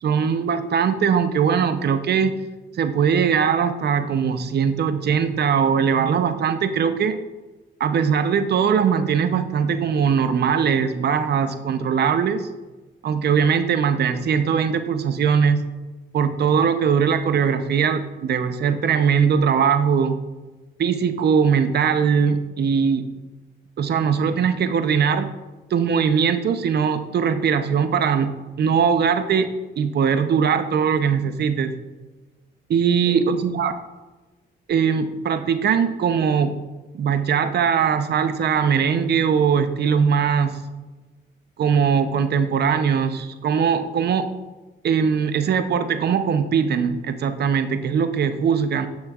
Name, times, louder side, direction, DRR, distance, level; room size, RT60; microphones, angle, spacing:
voice 1, 0.0-2.4 2.8-7.2 7.8-12.5 13.0-15.7 16.1-20.2 20.8-23.1 23.8-25.3 25.7-29.5 29.8-31.8 32.7-33.8 34.7-36.6 36.9-40.6 41.6-44.3 44.8-48.9, right 6 dB, 55° right, 10 dB, 0.7 m, -20 dB
15.5 x 6.3 x 2.4 m, 1.2 s
cardioid pair, 90°, 20 cm